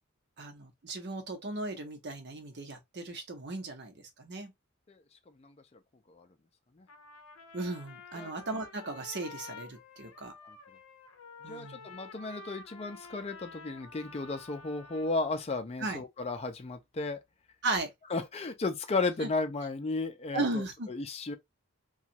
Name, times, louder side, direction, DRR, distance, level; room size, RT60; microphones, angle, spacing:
voice 1, 0.4-4.5 7.5-10.3 11.4-11.9 15.8-16.0 17.6-17.9 19.2-19.3 20.3-20.9, right 2 dB, 55° right, 0.8 m, -36 dB
Trumpet, 6.9-15.3, left 3 dB, 90° left, 0.6 m, -50 dB
voice 2, 11.5-17.2 18.1-21.4, left 3 dB, 30° left, 0.5 m, -34 dB
3.0 x 2.3 x 2.7 m
head